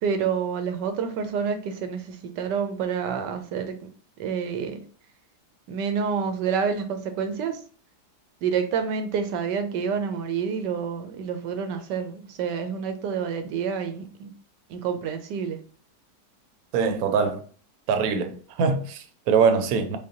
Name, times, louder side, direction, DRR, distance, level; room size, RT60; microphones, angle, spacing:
voice 1, 0.0-3.8 4.2-4.8 5.7-7.6 8.4-14.3 14.7-15.6, right 6 dB, 85° right, 1.3 m, -28 dB
voice 2, 16.7-17.4 17.9-20.0, right 5 dB, 65° right, 1.0 m, -23 dB
6.2 x 2.3 x 2.8 m
omnidirectional pair, 1.8 m